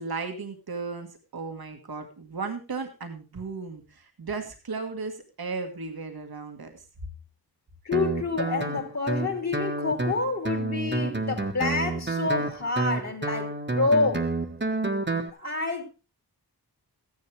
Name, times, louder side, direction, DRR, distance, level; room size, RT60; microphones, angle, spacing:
voice 1, 0.0-6.9, right 4 dB, 65° right, 1.7 m, -35 dB
voice 2, 7.8-14.3 15.4-15.8, left 3 dB, 45° left, 2.6 m, -28 dB
Guitar, 7.9-15.3, right 2 dB, 30° right, 1.4 m, -29 dB
14.0 x 10.5 x 3.3 m
wide cardioid pair, 90°, 39 cm